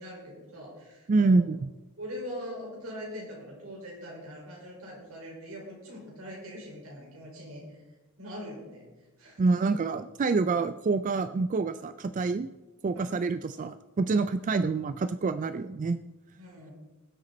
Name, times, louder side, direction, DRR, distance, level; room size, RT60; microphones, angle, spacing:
voice 1, 0.0-1.4 2.0-7.8 8.2-8.9 9.2-9.7 12.9-13.2 14.2-14.3 16.4-16.7, equal, 75° right, -2 dB, 5.2 m, -42 dB
voice 2, 1.1-1.7 9.4-12.5 12.8-16.0, right 3 dB, 35° right, 12 dB, 0.3 m, -27 dB
20.5 x 8.2 x 4.2 m, 1.1 s
head